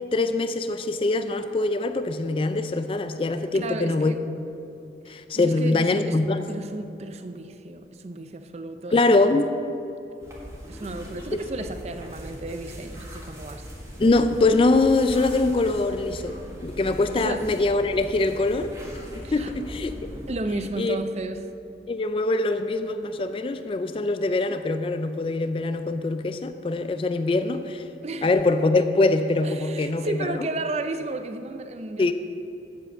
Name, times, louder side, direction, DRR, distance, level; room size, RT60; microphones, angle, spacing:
voice 1, 0.1-4.1 5.1-6.4 8.9-9.5 14.0-16.4 16.6-18.7 19.3-19.9 20.8-21.0 21.9-27.8 28.2-30.2 32.0-32.1, left 2 dB, 30° left, 9 dB, 0.3 m, -23 dB
voice 2, 3.5-4.2 5.1-6.2 6.5-9.2 10.7-13.7 17.1-17.5 19.2-19.6 20.3-21.4 28.0-28.4 29.4-32.1, right 2 dB, 35° right, 10 dB, 0.5 m, -33 dB
sound 1, 10.2-20.3, equal, 15° right, 1.4 m, -40 dB
7.5 x 7.4 x 7.6 m, 2.8 s
head